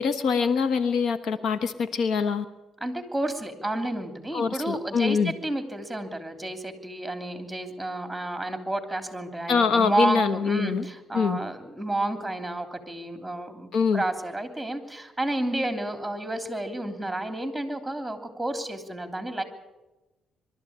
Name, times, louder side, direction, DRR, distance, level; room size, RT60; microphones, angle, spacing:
voice 1, 0.0-2.4 4.3-5.3 9.5-10.8 11.1-11.4 13.7-14.0, left 5 dB, 75° left, 12 dB, 1.2 m, -24 dB
voice 2, 2.8-19.4, right 1 dB, 5° right, 7 dB, 3.1 m, -31 dB
23.0 x 13.0 x 8.8 m, 1.1 s
cardioid pair, 90°, 0 cm